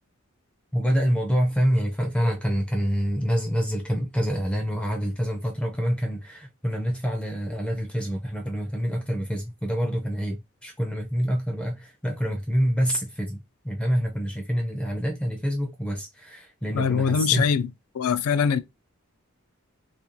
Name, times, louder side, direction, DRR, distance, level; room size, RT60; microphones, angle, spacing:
voice 1, 0.7-13.4 13.6-17.5, equal, 5° left, 0.4 m, -26 dB
voice 2, 16.7-17.7 17.9-18.6, left 6 dB, 80° left, 0.4 m, -22 dB
2.5 x 2.2 x 2.9 m
head